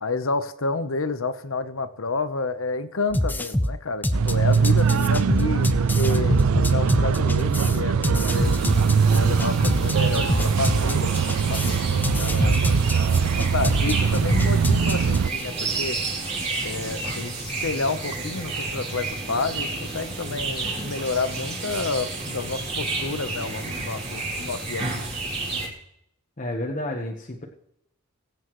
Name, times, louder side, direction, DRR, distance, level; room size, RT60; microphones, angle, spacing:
voice 1, 0.0-8.6 9.1-12.7 13.2-16.0 16.6-25.1, left 3 dB, 70° left, 11 dB, 0.9 m, -30 dB
sound 1, 3.1-15.4, left 1 dB, 10° left, 0.5 m, -26 dB
sound 2, 4.1-15.3, right 6 dB, 75° right, 0.4 m, -22 dB
sound 3, 8.3-25.7, right 3 dB, 30° right, 3.2 m, -31 dB
voice 2, 26.4-27.4, left 1 dB, 35° left, 0 dB, 1.2 m, -30 dB
22.5 x 8.2 x 3.1 m, 0.78 s
head